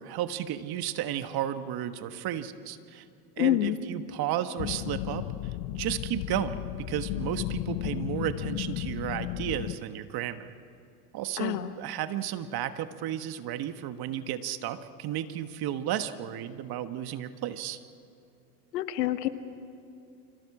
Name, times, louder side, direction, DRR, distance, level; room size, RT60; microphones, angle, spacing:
voice 1, 0.0-3.0 3.4-10.5 11.1-17.8, right 11 dB, 50° right, 10 dB, 1.5 m, -33 dB
voice 2, 3.4-3.8 11.4-11.7 18.7-19.3, left 14 dB, 80° left, 11 dB, 1.4 m, -27 dB
sound 1, 4.6-9.8, left 15 dB, 60° left, 1.0 m, -34 dB
29.5 x 26.0 x 4.9 m, 2.7 s
hypercardioid pair, 85°, 48 cm